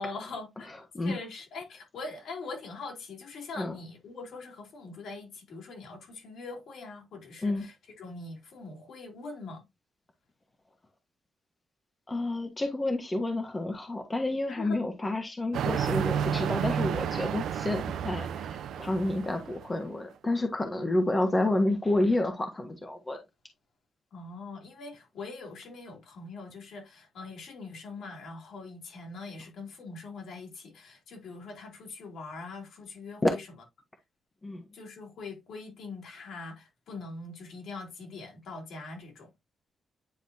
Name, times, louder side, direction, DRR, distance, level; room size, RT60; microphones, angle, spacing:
voice 1, 0.0-0.8 1.0-9.7 14.5-15.1 24.1-33.4 34.7-39.3, left 3 dB, 75° left, 2.8 m, -42 dB
voice 2, 0.6-1.1 3.5-3.8 7.4-7.7 12.1-23.2 33.2-33.3 34.4-34.6, left 2 dB, 20° left, 1.2 m, -29 dB
sound 1, 15.5-19.7, right 8 dB, 85° right, 0.6 m, -31 dB
9.5 x 4.0 x 2.7 m
cardioid pair, 145°, 0 cm